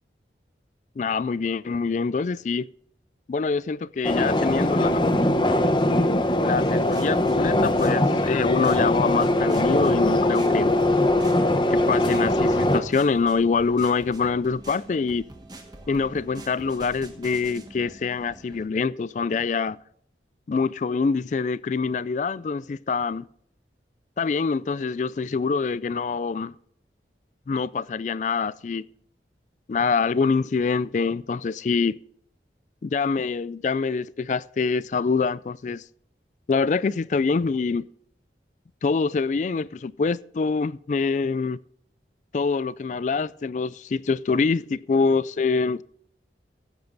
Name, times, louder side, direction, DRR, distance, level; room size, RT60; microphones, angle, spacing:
voice 1, 1.0-2.7 3.3-5.0 6.4-10.7 11.7-15.2 15.9-19.8 20.5-23.2 24.2-26.5 27.5-28.8 29.7-32.0 32.8-35.8 36.5-37.8 38.8-41.6 42.3-45.8, left 4 dB, 45° left, 0.3 m, -25 dB
sound 1, 4.0-12.8, left 1 dB, 25° left, 0.8 m, -21 dB
sound 2, 6.7-18.7, right 1 dB, 25° right, 1.3 m, -44 dB
15.5 x 8.1 x 3.9 m
head